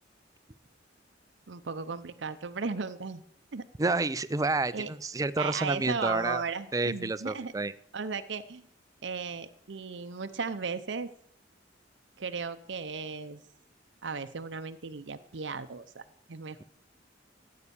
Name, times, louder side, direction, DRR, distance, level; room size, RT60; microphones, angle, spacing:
voice 1, 1.5-3.2 3.5-3.6 4.7-4.9 5.4-7.5 7.9-8.6 9.0-11.1 12.2-13.4 14.0-16.6, right 5 dB, 70° right, 10 dB, 0.7 m, -36 dB
voice 2, 3.8-6.4 6.7-7.7, right 3 dB, 20° right, 15 dB, 0.5 m, -29 dB
14.5 x 8.5 x 7.0 m, 0.68 s
head